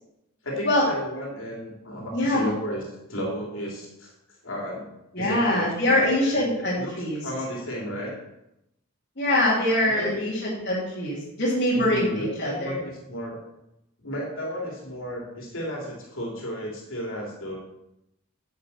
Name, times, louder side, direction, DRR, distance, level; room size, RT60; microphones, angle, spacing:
voice 1, 0.4-2.8 3.1-4.1 4.4-6.5 6.8-7.0 7.2-8.2 9.9-10.3 11.7-13.4 14.0-17.6, equal, 65° left, -2 dB, 3.3 m, -33 dB
voice 2, 2.1-2.5 5.1-7.2 9.2-12.8, left 1 dB, 50° left, -6 dB, 2.9 m, -24 dB
9.5 x 6.5 x 7.2 m, 0.86 s
head